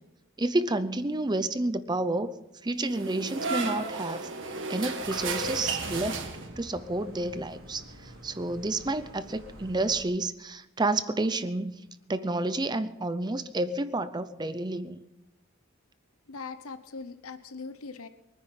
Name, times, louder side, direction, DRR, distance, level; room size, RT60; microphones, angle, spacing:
voice 1, 0.4-2.3 2.6-4.3 4.7-6.2 6.6-11.7 12.1-15.0, right 2 dB, 20° right, 13 dB, 0.6 m, -30 dB
sound 1, 2.9-6.8, right 4 dB, 60° right, 1.8 m, -33 dB
sound 2, 5.0-10.0, right 1 dB, 85° right, 3.4 m, -48 dB
voice 2, 16.3-18.1, left 4 dB, 90° left, 11 dB, 0.9 m, -40 dB
23.0 x 9.9 x 5.7 m, 0.90 s
head